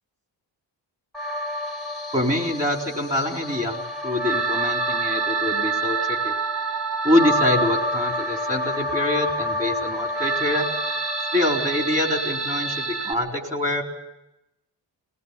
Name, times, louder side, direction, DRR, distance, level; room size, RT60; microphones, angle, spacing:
sound 1, 1.1-13.1, right 2 dB, ahead, 2.0 m, -27 dB
voice 1, 2.1-6.0 6.2-6.3 7.0-10.6 11.3-13.8, left 1 dB, 15° right, 2 dB, 3.9 m, -25 dB
20.5 x 19.5 x 8.4 m, 0.89 s
wide cardioid pair, 130°, 45 cm